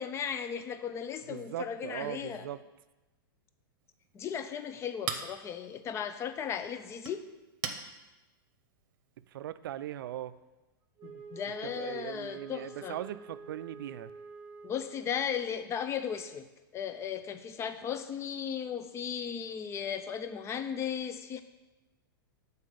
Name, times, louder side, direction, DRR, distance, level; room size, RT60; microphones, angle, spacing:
voice 1, 0.0-2.5 4.1-7.3 11.0-13.0 14.6-16.5 16.7-21.4, left 8 dB, 25° left, 10 dB, 0.5 m, -36 dB
voice 2, 1.3-2.6 9.2-10.4 11.6-14.1, right 12 dB, 75° right, 14 dB, 0.4 m, -39 dB
Chink clink, 3.8-9.3, right 8 dB, 55° right, 0.8 m, -44 dB
Wind instrument woodwind instrument, 11.0-15.2, right 4 dB, 20° right, 1.0 m, -48 dB
6.7 x 4.1 x 5.2 m, 1.1 s
hypercardioid pair, 125°, 12 cm